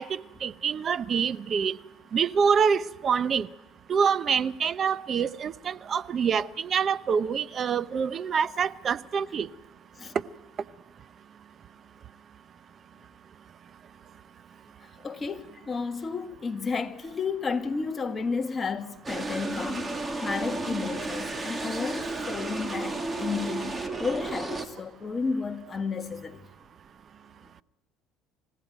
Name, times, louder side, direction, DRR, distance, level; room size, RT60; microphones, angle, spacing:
voice 1, 0.0-1.8 2.1-3.5 3.9-9.5, right 6 dB, 40° right, 0.7 m, -26 dB
voice 2, 14.8-26.4, left 4 dB, 25° left, 1.5 m, -32 dB
sound 1, 19.0-24.7, right 2 dB, 20° right, 2.1 m, -33 dB
27.5 x 16.0 x 9.2 m
cardioid pair, 115°, 0 cm